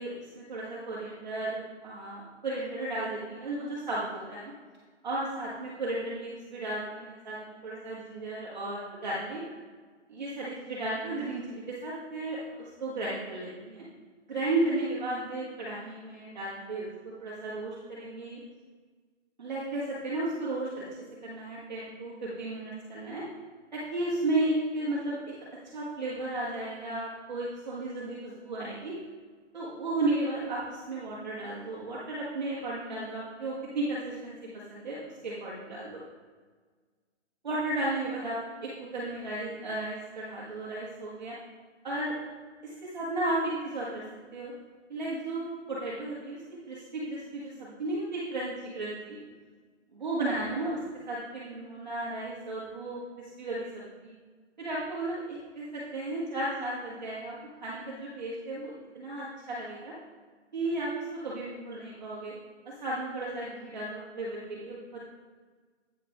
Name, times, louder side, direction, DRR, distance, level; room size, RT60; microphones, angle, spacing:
voice 1, 0.0-4.5 5.0-9.4 10.1-13.8 14.3-16.9 17.2-18.4 19.4-20.8 21.2-23.2 23.7-25.3 25.7-28.9 29.5-34.3 34.7-36.0 37.4-41.4 41.8-42.1 42.6-44.0 44.3-44.5 44.9-46.4 46.7-49.2 49.9-50.8 51.1-53.0 53.4-54.1 54.6-57.3 57.6-59.9 60.5-62.3 62.6-65.0, right 2 dB, 35° right, -7 dB, 1.3 m, -34 dB
8.4 x 5.3 x 4.1 m, 1.5 s
hypercardioid pair, 175°, 37 cm